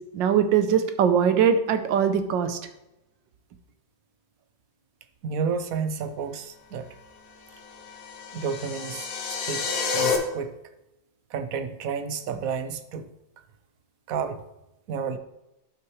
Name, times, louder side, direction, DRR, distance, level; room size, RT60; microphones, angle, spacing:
voice 1, 0.1-2.6, right 7 dB, 90° right, 9 dB, 1.5 m, -21 dB
voice 2, 5.2-6.9 8.3-10.6 11.3-13.1 14.1-14.4 14.9-15.2, right 6 dB, 65° right, 9 dB, 0.9 m, -31 dB
sound 1, 7.6-10.2, left 5 dB, 55° left, 1.4 m, -29 dB
11.0 x 5.8 x 3.1 m, 0.92 s
omnidirectional pair, 2.0 m